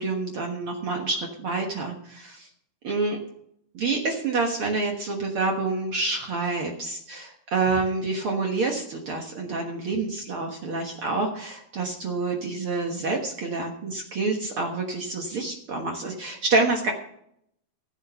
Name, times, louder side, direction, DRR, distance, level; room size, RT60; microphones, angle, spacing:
voice 1, 0.0-2.5 2.8-3.2 3.7-16.9, right 3 dB, 80° right, 1 dB, 1.2 m, -27 dB
15.5 x 8.4 x 5.6 m, 0.73 s
omnidirectional pair, 4.7 m